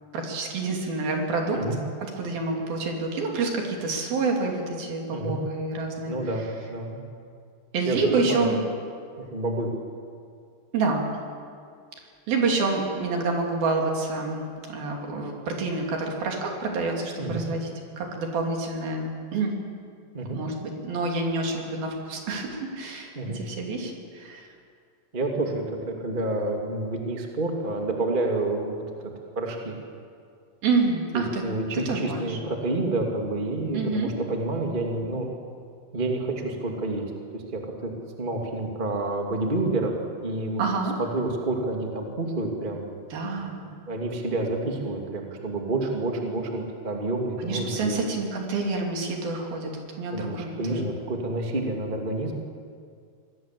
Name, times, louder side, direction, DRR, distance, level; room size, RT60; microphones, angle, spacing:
voice 1, 0.1-1.6 2.0-6.1 7.7-8.6 10.7-11.0 12.3-17.7 18.0-19.5 20.3-24.5 30.6-31.4 31.9-32.4 33.7-34.1 40.6-41.0 43.1-43.6 47.4-50.9, right 3 dB, 60° right, 1 dB, 4.5 m, -28 dB
voice 2, 6.0-7.1 7.8-8.0 8.3-8.5 9.2-9.7 17.2-17.4 20.1-20.4 23.1-23.4 25.1-28.8 29.3-29.7 31.1-35.3 35.9-37.0 37.3-37.9 38.2-39.9 40.2-40.6 41.0-42.9 43.6-48.0 50.1-52.3, right 2 dB, 20° right, 1 dB, 1.5 m, -29 dB
25.0 x 18.5 x 7.7 m, 2.2 s
omnidirectional pair, 4.8 m